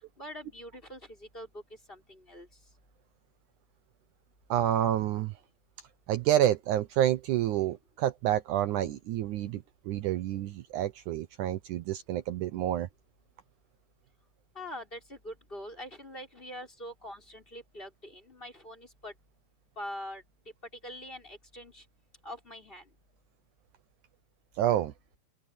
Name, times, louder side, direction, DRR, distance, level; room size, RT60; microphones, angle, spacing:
voice 1, 0.2-1.6 1.9-2.5 14.6-19.1 19.8-20.2 20.8-21.8 22.2-22.8, left 1 dB, 15° left, 5.3 m, -44 dB
voice 2, 4.5-5.3 6.1-12.9 24.6-24.9, right 12 dB, 75° right, 2.2 m, -28 dB
open air
omnidirectional pair, 3.8 m